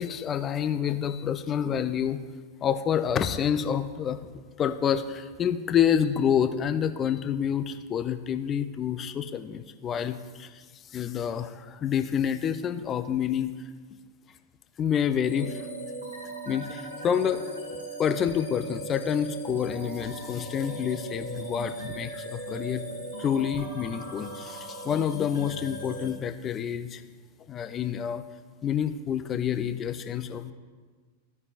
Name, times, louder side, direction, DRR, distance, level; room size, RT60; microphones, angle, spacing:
voice 1, 0.0-2.2 2.6-10.6 10.9-13.5 14.8-15.6 16.5-17.4 18.0-22.9 23.2-27.0 27.5-28.2 28.6-30.5, left 8 dB, 25° left, 9 dB, 0.5 m, -28 dB
sound 1, 15.2-26.1, right 1 dB, 75° right, 1.9 m, -38 dB
15.0 x 5.3 x 2.5 m, 1.5 s
figure-of-eight pair, 90°, 0 cm